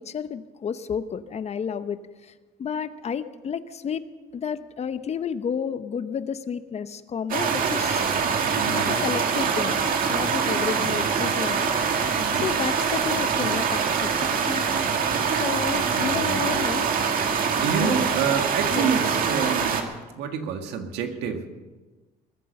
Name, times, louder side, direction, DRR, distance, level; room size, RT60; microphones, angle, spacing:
voice 1, 0.0-2.3 2.6-4.0 4.3-8.1 8.6-9.8 10.1-11.7 12.0-16.9 17.8-18.0 18.7-18.9, left 7 dB, 40° left, 12 dB, 0.8 m, -31 dB
sound 1, 7.3-19.8, right 6 dB, 55° right, 2.0 m, -24 dB
voice 2, 8.6-9.1 12.2-12.5 15.9-16.5 17.6-19.8 20.2-21.5, right 6 dB, 85° right, 5 dB, 1.9 m, -28 dB
20.5 x 10.0 x 6.7 m, 1.2 s
cardioid pair, 110°, 17 cm